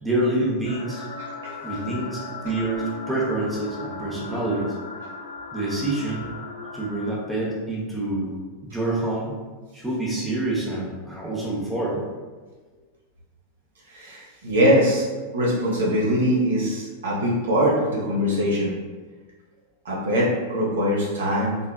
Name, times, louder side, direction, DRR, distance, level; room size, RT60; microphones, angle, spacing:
voice 1, 0.0-1.0 1.6-4.7 5.5-6.3 6.7-9.3 9.7-12.0, right 2 dB, 10° right, -5 dB, 0.9 m, -27 dB
sound 1, 0.6-7.1, left 3 dB, 70° left, 0.4 m, -37 dB
voice 2, 1.2-1.6 11.4-11.5 13.9-15.0 15.3-18.7 19.8-21.6, equal, 65° right, -4 dB, 1.0 m, -22 dB
3.7 x 3.3 x 2.3 m, 1.4 s
figure-of-eight pair, 90°, 0 cm